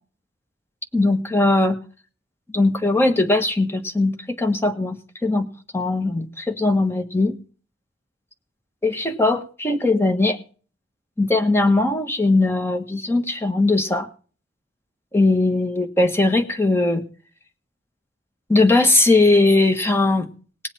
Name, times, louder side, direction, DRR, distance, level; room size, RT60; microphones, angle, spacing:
voice 1, 0.9-1.8 2.5-5.5 5.7-7.3 8.8-10.4 11.2-14.1 15.1-17.0 18.5-20.3, left 2 dB, 15° left, 5 dB, 1.4 m, -19 dB
19.5 x 7.9 x 4.3 m, 0.39 s
head